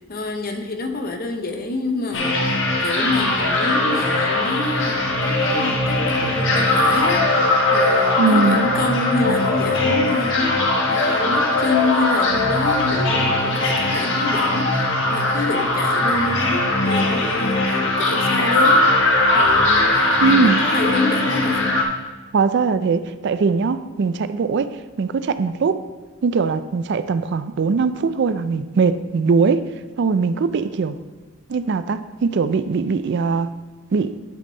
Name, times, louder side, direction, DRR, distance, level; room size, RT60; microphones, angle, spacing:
voice 1, 0.0-10.6 10.9-18.9 19.3-21.7, left 2 dB, 45° left, 5 dB, 0.9 m, -27 dB
sound 1, 2.1-21.8, left 2 dB, 60° left, 1.2 m, -19 dB
voice 2, 8.2-8.7 20.2-20.6 22.3-25.8 26.2-29.7 30.0-31.0 31.5-33.5 33.9-34.1, right 4 dB, 55° right, 13 dB, 0.4 m, -20 dB
11.5 x 5.5 x 3.9 m, 1.3 s
head